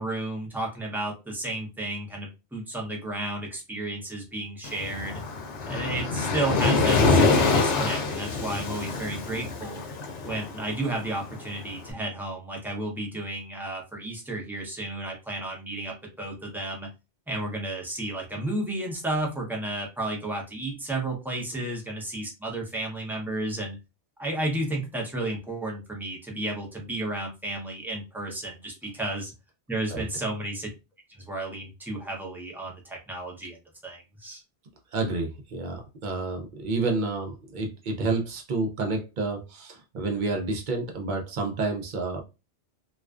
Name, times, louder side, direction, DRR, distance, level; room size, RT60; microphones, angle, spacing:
voice 1, 0.0-5.2 5.6-9.8 10.2-16.9 17.3-23.8 24.2-29.3 29.7-30.7 31.1-33.6 33.8-34.4, right 2 dB, 5° right, 0.4 m, -32 dB
Waves surf, 4.6-11.8, left 3 dB, 80° left, 0.9 m, -25 dB
voice 2, 34.9-42.2, right 3 dB, 55° right, 0.6 m, -29 dB
2.4 x 2.2 x 2.3 m
omnidirectional pair, 1.2 m